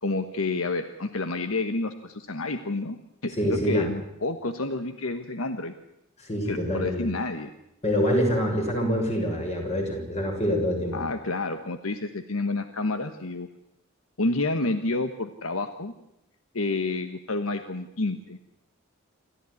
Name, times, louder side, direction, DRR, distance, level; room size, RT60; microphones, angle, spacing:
voice 1, 0.0-5.7 6.5-7.5 10.9-13.5 14.2-15.9 16.5-18.4, left 2 dB, 85° left, 9 dB, 1.3 m, -29 dB
voice 2, 3.3-3.8 6.2-7.1 7.8-11.0, equal, 30° left, 2 dB, 6.7 m, -26 dB
28.0 x 14.5 x 9.8 m, 0.84 s
head